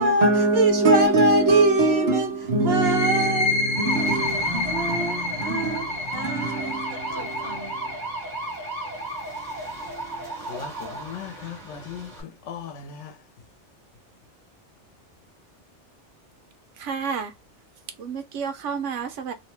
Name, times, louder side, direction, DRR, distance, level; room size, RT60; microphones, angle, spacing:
voice 1, 0.0-7.9, right 2 dB, 65° right, 1.0 m, -22 dB
sound 1, 2.7-10.1, left 2 dB, 50° left, 0.7 m, -30 dB
sound 2, 3.7-12.2, right 2 dB, 35° right, 1.5 m, -34 dB
voice 2, 10.5-12.1 12.5-13.1, left 7 dB, 85° left, 1.0 m, -37 dB
voice 3, 16.8-17.3 18.0-19.3, right 6 dB, 90° right, 0.9 m, -30 dB
2.7 x 2.1 x 2.9 m
omnidirectional pair, 1.2 m